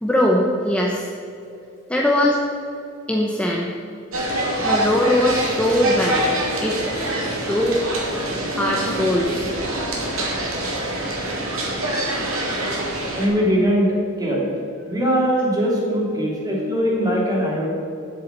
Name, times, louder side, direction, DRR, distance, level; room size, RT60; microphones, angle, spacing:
voice 1, 0.0-1.1 1.9-2.4 3.1-3.7 4.6-8.0 8.6-9.5 12.6-12.7, left 1 dB, 5° left, -2 dB, 0.9 m, -21 dB
sound 1, 4.1-13.3, right 1 dB, 90° right, 2.6 m, -25 dB
voice 2, 13.1-13.9 14.2-14.4 14.9-17.7, equal, 20° right, -4 dB, 2.8 m, -21 dB
8.4 x 7.2 x 8.1 m, 2.7 s
head